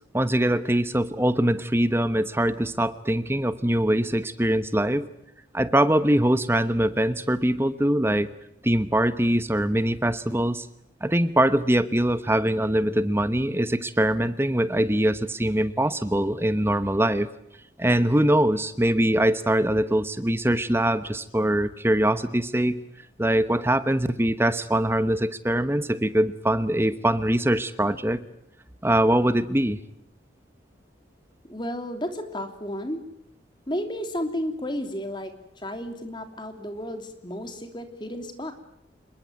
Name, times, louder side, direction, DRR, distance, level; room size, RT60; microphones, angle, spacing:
voice 1, 0.1-5.1 5.5-8.3 8.6-10.7 11.0-17.3 17.8-22.7 23.2-28.2 28.8-29.8, right 1 dB, 15° right, 13 dB, 1.0 m, -23 dB
voice 2, 31.4-33.0 33.7-38.5, left 1 dB, 25° left, 7 dB, 3.1 m, -32 dB
27.0 x 22.5 x 9.4 m, 0.73 s
head